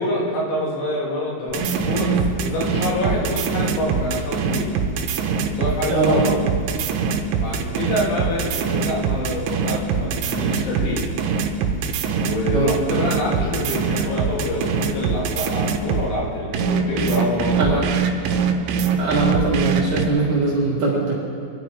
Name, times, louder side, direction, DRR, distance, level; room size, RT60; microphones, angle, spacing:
voice 1, 0.0-4.7 5.5-6.4 7.4-11.1 12.2-17.8, left 1 dB, 70° left, -5 dB, 5.1 m, -26 dB
sound 1, 1.5-16.1 16.5-20.1, right 6 dB, 75° right, 3.2 m, -23 dB
voice 2, 5.9-6.2 12.5-12.8 17.6-17.8 19.0-21.1, right 3 dB, 55° right, -5 dB, 2.7 m, -21 dB
25.5 x 11.5 x 4.7 m, 2.6 s
omnidirectional pair, 5.7 m